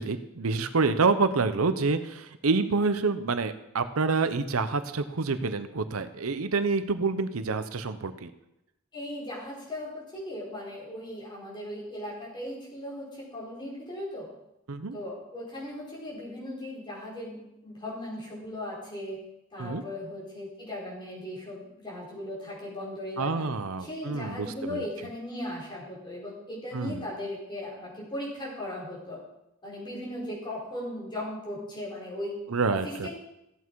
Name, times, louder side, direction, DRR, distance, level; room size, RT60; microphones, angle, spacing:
voice 1, 0.0-8.3 14.7-15.0 19.6-19.8 23.2-24.8 26.7-27.0 32.5-33.1, right 4 dB, 90° right, 11 dB, 0.8 m, -27 dB
voice 2, 8.9-14.3 14.9-19.2 19.5-23.4 23.8-29.2 29.6-32.4 32.7-33.1, left 1 dB, 20° left, -5 dB, 4.7 m, -37 dB
14.5 x 8.3 x 4.7 m, 0.87 s
head